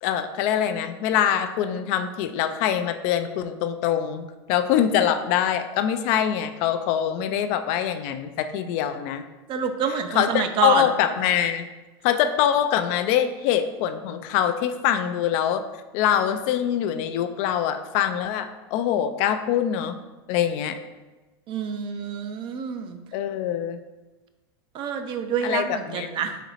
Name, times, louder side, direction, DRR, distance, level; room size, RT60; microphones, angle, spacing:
voice 1, 0.0-9.2 10.1-11.7 12.0-15.6 15.9-20.0 20.3-20.8 23.1-23.8 25.4-26.1, left 10 dB, 55° left, 9 dB, 0.4 m, -24 dB
voice 2, 9.5-10.9 21.5-23.0 24.7-26.4, right 7 dB, 40° right, 7 dB, 0.4 m, -27 dB
4.1 x 3.0 x 4.1 m, 1.2 s
supercardioid pair, 125°, 14 cm